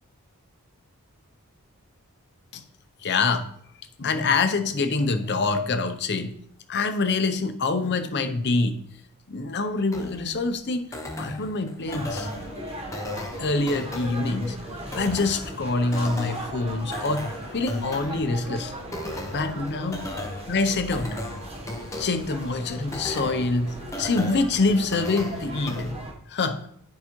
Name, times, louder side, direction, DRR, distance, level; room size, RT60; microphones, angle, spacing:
voice 1, 3.0-3.5 4.0-6.4 6.7-8.8 9.3-10.8 11.2-12.3 13.4-14.6 14.9-18.7 19.3-20.1 20.5-21.2 22.0-26.6, left 3 dB, 50° left, 9 dB, 0.6 m, -25 dB
sound 1, 9.9-25.9, left 1 dB, 15° left, 0.8 m, -37 dB
sound 2, 11.9-26.1, right 1 dB, 30° right, 1.0 m, -38 dB
10.5 x 4.7 x 3.0 m, 0.67 s
head